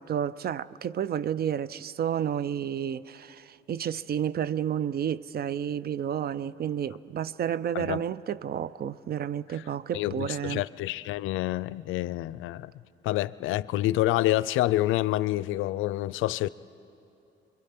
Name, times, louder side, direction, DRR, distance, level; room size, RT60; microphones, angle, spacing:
voice 1, 0.0-10.6, right 9 dB, 50° right, 0.5 m, -31 dB
voice 2, 9.9-12.7 13.0-16.5, left 16 dB, 85° left, 0.4 m, -27 dB
25.0 x 22.5 x 5.8 m
cardioid pair, 90°, 20 cm